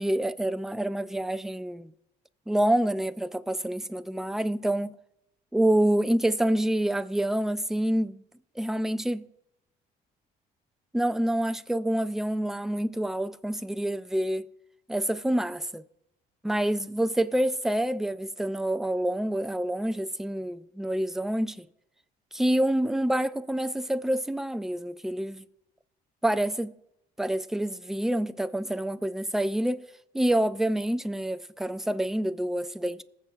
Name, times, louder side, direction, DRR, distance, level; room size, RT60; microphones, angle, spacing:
voice 1, 0.0-1.9 2.5-4.9 5.5-8.2 8.6-9.2 10.9-14.4 14.9-15.7 16.4-21.7 22.3-25.4 26.2-26.7 27.2-29.8 30.1-33.0, right 1 dB, ahead, 0.4 m, -27 dB
20.5 x 6.9 x 2.4 m
cardioid pair, 110°, 17 cm